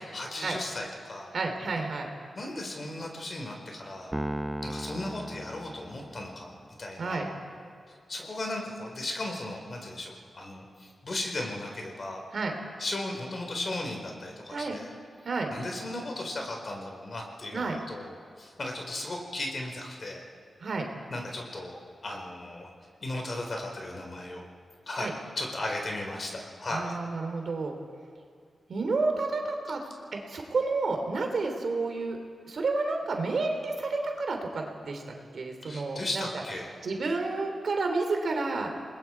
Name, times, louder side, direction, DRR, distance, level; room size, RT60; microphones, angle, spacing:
voice 1, 0.0-1.3 2.3-4.1 4.6-6.5 6.8-7.3 7.9-12.2 12.8-14.9 15.5-20.2 21.1-22.7 23.0-24.5 24.9-27.0 35.6-36.7, left 2 dB, 50° left, 1 dB, 4.5 m, -36 dB
voice 2, 1.3-2.1 7.0-7.3 12.3-12.5 14.5-14.8 15.2-15.5 17.5-17.8 20.6-20.8 25.0-25.1 26.7-27.8 28.7-29.8 30.1-32.2 32.5-35.0 35.3-36.3 36.8-38.7, right 3 dB, 70° right, 3 dB, 3.0 m, -30 dB
Piano, 4.1-6.5, right 1 dB, 10° right, 0.6 m, -36 dB
28.5 x 20.5 x 4.7 m, 2.1 s
cardioid pair, 65°, 0 cm